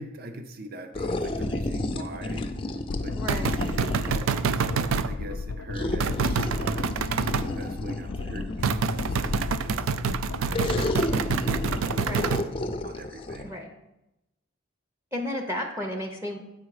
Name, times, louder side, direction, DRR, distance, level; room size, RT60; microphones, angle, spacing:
voice 1, 0.0-2.7 3.0-9.9 10.3-12.5 12.8-13.6, right 1 dB, 45° right, 7 dB, 0.6 m, -43 dB
sound 1, 0.9-4.3 5.7-9.6 10.5-13.4, left 2 dB, 25° left, 0.4 m, -31 dB
sound 2, 2.9-12.3, left 3 dB, 90° left, 0.4 m, -35 dB
voice 2, 3.2-3.5 12.0-12.3 13.4-13.7 15.1-16.4, left 1 dB, 15° right, 3 dB, 0.7 m, -32 dB
sound 3, 3.3-5.1 6.0-7.5 8.6-12.5, right 6 dB, 85° right, 0.4 m, -27 dB
8.4 x 4.8 x 4.8 m, 0.92 s
head